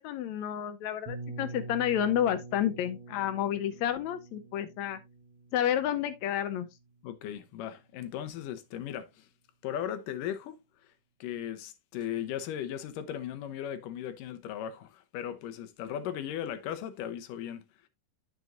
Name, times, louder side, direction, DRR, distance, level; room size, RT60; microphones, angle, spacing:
voice 1, 0.0-5.0 5.5-6.7, left 10 dB, 75° left, 1.8 m, -30 dB
sound 1, 1.1-6.8, right 3 dB, 60° right, 2.4 m, -45 dB
voice 2, 7.0-9.3 9.6-10.6 10.8-10.9 11.2-17.9, left 10 dB, 90° left, 2.5 m, -37 dB
9.3 x 7.1 x 2.5 m
omnidirectional pair, 3.7 m